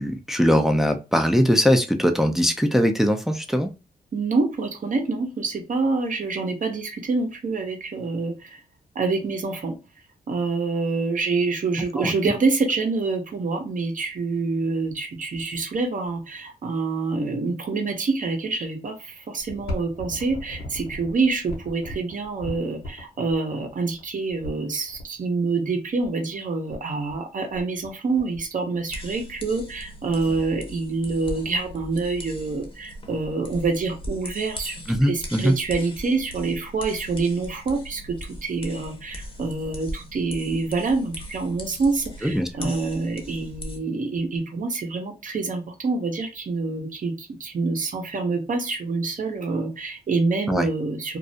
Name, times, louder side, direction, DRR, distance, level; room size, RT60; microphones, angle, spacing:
voice 1, 0.0-3.7 12.0-12.1 34.9-35.5 42.2-42.7 50.5-50.7, equal, ahead, 0.5 m, -21 dB
voice 2, 4.1-8.6 8.9-9.8 10.3-51.2, right 3 dB, 50° right, 0.7 m, -26 dB
sound 1, 19.4-25.0 26.0-26.1 26.3-26.4 26.7-27.2 27.5-27.9 28.2-29.1 29.6-29.7 30.1-30.4 30.8-30.9 31.1-31.7 32.2-33.0 33.4-33.5 34.3-34.4, left 1 dB, 65° left, 1.0 m, -38 dB
sound 2, 28.9-43.8, equal, 30° left, 0.9 m, -39 dB
2.4 x 2.0 x 2.6 m
supercardioid pair, 50°, 17 cm